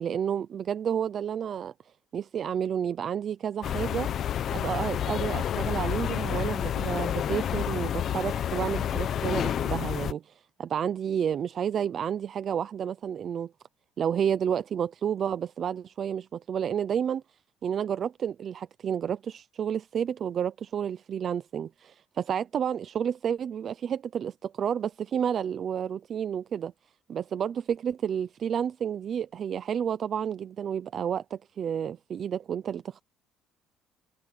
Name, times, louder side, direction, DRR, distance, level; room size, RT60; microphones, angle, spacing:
voice 1, 0.0-1.7 2.1-4.1 4.5-13.5 14.0-17.2 17.6-26.7 27.1-33.0, right 8 dB, 40° right, 0.6 m, -30 dB
sound 1, 3.6-10.1, left 10 dB, 45° left, 1.0 m, -29 dB
cardioid pair, 145°, 0 cm